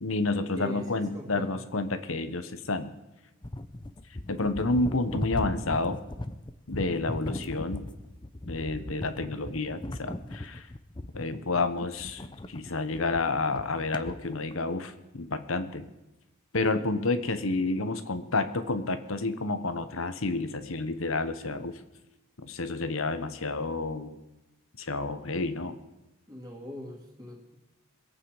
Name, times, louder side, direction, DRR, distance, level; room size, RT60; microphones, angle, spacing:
voice 1, 0.0-2.9 4.3-6.0 6.7-7.9 8.5-10.7 11.1-15.9 16.5-21.7 22.4-24.2 24.8-25.8, left 3 dB, 80° left, 11 dB, 1.1 m, -30 dB
voice 2, 0.5-1.6 26.3-27.6, left 1 dB, 20° right, -3 dB, 3.1 m, -41 dB
sound 1, 3.4-14.6, left 1 dB, 20° left, 0.6 m, -38 dB
23.0 x 8.7 x 4.9 m, 1.0 s
head